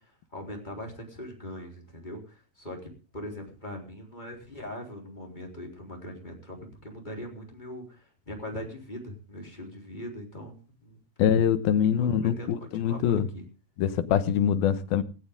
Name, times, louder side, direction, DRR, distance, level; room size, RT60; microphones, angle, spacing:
voice 1, 0.3-11.0 11.2-11.3 12.0-13.5, left 1 dB, 10° left, 3.8 m, -41 dB
voice 2, 11.2-13.3 13.8-15.0, left 9 dB, 70° left, 2.8 m, -24 dB
17.5 x 16.0 x 3.7 m
omnidirectional pair, 4.7 m